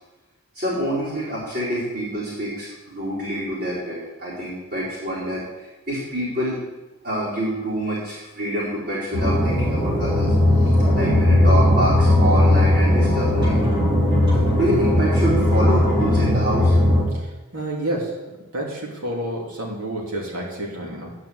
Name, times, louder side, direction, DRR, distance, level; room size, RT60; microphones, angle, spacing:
voice 1, 0.5-6.6 7.0-13.7 14.6-16.7, right 1 dB, 40° right, -11 dB, 4.3 m, -26 dB
sound 1, 9.1-17.0, left 1 dB, 20° right, 3.5 m, -18 dB
voice 2, 17.1-18.2 18.5-21.1, right 1 dB, 80° right, -2 dB, 2.8 m, -29 dB
11.5 x 5.5 x 7.9 m, 1.1 s
head